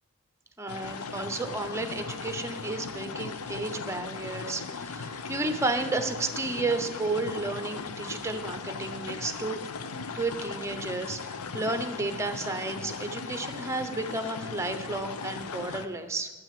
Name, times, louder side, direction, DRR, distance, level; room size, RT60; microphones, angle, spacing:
voice 1, 0.6-9.6 10.2-16.3, right 2 dB, 15° right, 8 dB, 0.8 m, -32 dB
sound 1, 0.7-15.9, left 5 dB, 85° left, 0.7 m, -38 dB
9.0 x 8.9 x 7.6 m, 1.2 s
head